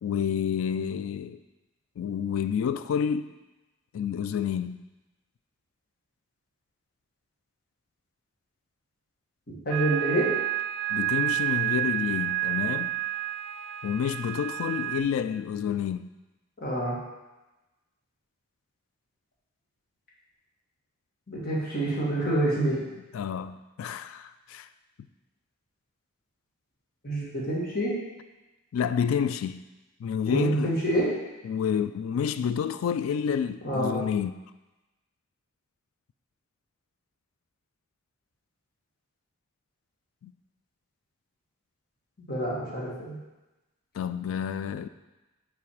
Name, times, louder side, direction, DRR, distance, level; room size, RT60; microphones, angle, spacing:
voice 1, 0.0-1.4 2.0-3.3 3.9-4.8 10.9-12.9 13.8-16.1 23.1-24.7 28.7-29.6 30.0-30.7 31.4-34.3 40.2-40.3 43.9-44.9, left 7 dB, 85° left, 0.3 m, -29 dB
voice 2, 9.5-10.3 16.6-17.0 21.3-22.8 27.0-28.0 30.3-31.1 33.6-34.0 42.3-43.2, right 1 dB, 50° left, 1.8 m, -27 dB
sound 1, 9.7-15.0, right 15 dB, 65° right, 0.4 m, -29 dB
5.8 x 4.3 x 4.8 m
head